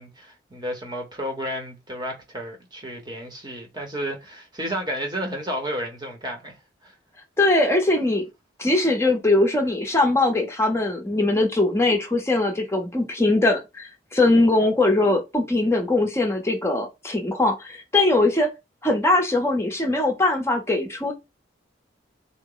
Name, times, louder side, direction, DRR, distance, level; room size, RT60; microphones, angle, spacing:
voice 1, 0.0-6.6 6.8-6.9, equal, 20° right, 0.9 m, -32 dB
voice 2, 7.4-8.3 8.6-18.5 18.8-21.1, left 2 dB, 15° left, 0.6 m, -21 dB
3.8 x 2.0 x 3.8 m
head